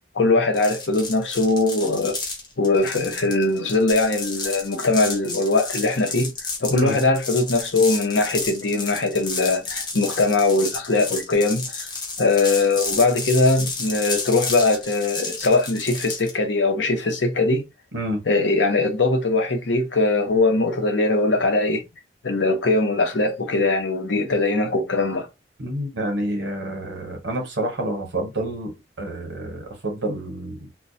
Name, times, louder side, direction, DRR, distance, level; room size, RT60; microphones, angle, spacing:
voice 1, 0.1-2.2 2.6-6.3 6.6-11.9 12.2-17.6 18.3-21.8 22.2-25.3, left 3 dB, 90° left, 0.7 m, -21 dB
sound 1, 0.5-16.4, left 3 dB, 25° left, 0.5 m, -32 dB
voice 2, 25.6-28.7 29.0-30.6, right 1 dB, 90° right, 0.8 m, -28 dB
2.2 x 2.1 x 2.6 m
head